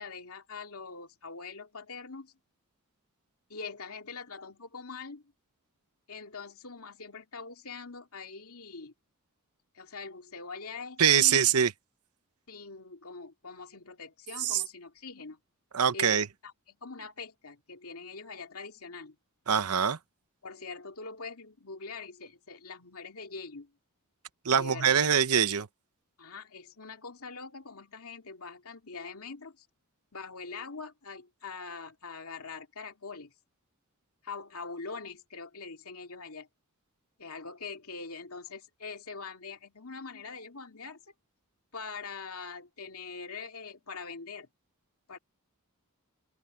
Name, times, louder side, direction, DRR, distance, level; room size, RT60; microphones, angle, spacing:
voice 1, 0.0-2.3 3.5-5.2 6.1-8.9 9.7-11.5 12.5-15.4 15.9-19.2 20.4-23.7 24.5-25.1 26.2-29.7 30.1-33.3 34.2-36.5 37.2-41.0 41.7-44.5 45.1-45.2, left 4 dB, 75° left, 2.7 m, -43 dB
voice 2, 11.0-11.7 14.4-14.6 15.7-16.3 19.5-20.0 24.4-25.7, right 8 dB, 90° right, 0.9 m, -24 dB
head